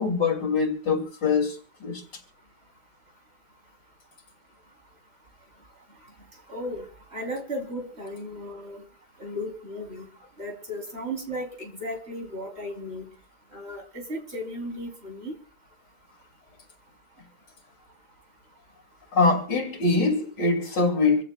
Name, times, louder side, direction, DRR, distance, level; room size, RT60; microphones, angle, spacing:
voice 1, 0.0-2.0 19.1-21.2, left 4 dB, 90° left, 3.3 m, -23 dB
voice 2, 6.5-6.9 7.1-8.8 9.2-10.1 10.4-13.1 13.5-15.3, equal, 35° right, 3.8 m, -35 dB
26.0 x 15.5 x 2.3 m
omnidirectional pair, 1.8 m